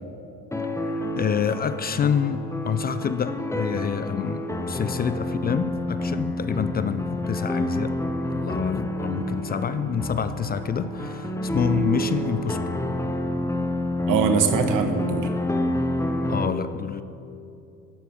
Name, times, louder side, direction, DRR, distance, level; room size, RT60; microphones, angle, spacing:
sound 1, 0.5-16.5, left 1 dB, 10° left, 0.9 m, -28 dB
voice 1, 0.9-7.9 8.3-12.6 16.3-17.0, left 7 dB, 30° left, 12 dB, 0.4 m, -27 dB
voice 2, 14.1-15.3, right 6 dB, 65° right, 7 dB, 1.3 m, -22 dB
11.5 x 5.9 x 7.1 m, 2.7 s
supercardioid pair, 85°, 34 cm